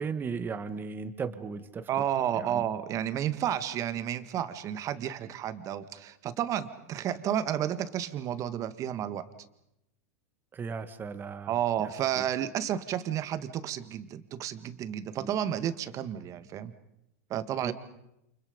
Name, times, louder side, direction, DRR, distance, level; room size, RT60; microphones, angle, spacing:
voice 1, 0.0-1.9 2.3-2.6 10.5-11.5 11.8-12.2 15.2-15.3 17.6-17.7, right 5 dB, 25° right, 10 dB, 2.0 m, -36 dB
voice 2, 1.9-9.3 11.5-16.7 17.3-17.7, right 10 dB, 40° right, 12 dB, 1.8 m, -31 dB
29.0 x 28.5 x 5.3 m, 0.86 s
hypercardioid pair, 110°, 9 cm